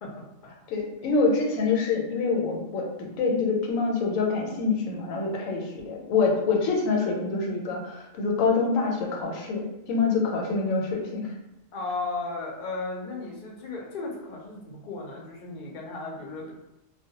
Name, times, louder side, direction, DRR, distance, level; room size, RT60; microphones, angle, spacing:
voice 1, 0.0-0.5 11.7-16.5, left 3 dB, 60° left, -1 dB, 0.5 m, -35 dB
voice 2, 0.7-11.3, left 4 dB, 85° left, 0 dB, 1.0 m, -26 dB
2.2 x 2.0 x 2.8 m, 0.92 s
omnidirectional pair, 1.3 m